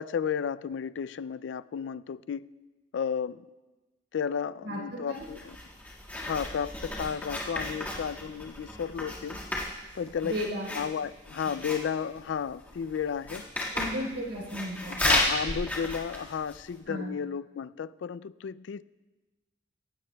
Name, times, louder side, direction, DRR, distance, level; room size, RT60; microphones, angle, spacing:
voice 1, 0.0-2.5 2.9-3.5 4.1-5.6 6.1-9.4 9.9-10.3 10.7-13.5 14.9-18.8, left 7 dB, 80° left, 17 dB, 0.3 m, -33 dB
voice 2, 4.6-5.2 10.2-10.7 13.7-14.9 16.9-17.1, equal, 85° right, -3 dB, 4.1 m, -34 dB
Writing, 5.1-16.8, left 1 dB, 10° left, 1.8 m, -34 dB
17.5 x 16.0 x 2.3 m, 1.2 s
head